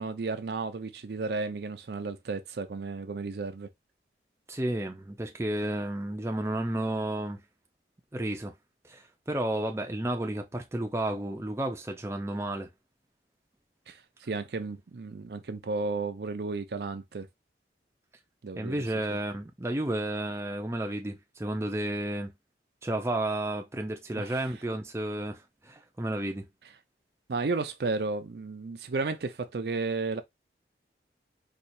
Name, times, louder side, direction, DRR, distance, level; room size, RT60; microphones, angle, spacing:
voice 1, 0.0-3.7 13.9-17.3 18.4-18.8 24.2-24.4 27.3-30.2, right 3 dB, 65° right, 0.5 m, -33 dB
voice 2, 4.5-7.4 8.1-8.5 8.9-12.7 18.6-22.3 22.8-26.5, right 1 dB, 15° right, 0.5 m, -32 dB
4.3 x 2.4 x 2.6 m
head